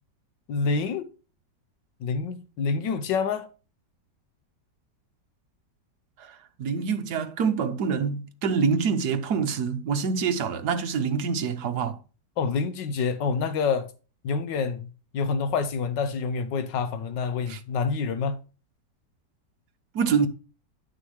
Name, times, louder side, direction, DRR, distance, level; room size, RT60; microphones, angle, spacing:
voice 1, 0.5-1.1 2.0-3.5 12.4-13.9 14.2-14.9 15.1-18.4, left 5 dB, 85° left, 1.6 m, -27 dB
voice 2, 6.2-12.0 17.5-17.6 19.9-20.3, right 6 dB, 65° right, 1.5 m, -26 dB
10.0 x 6.2 x 3.2 m
omnidirectional pair, 1.9 m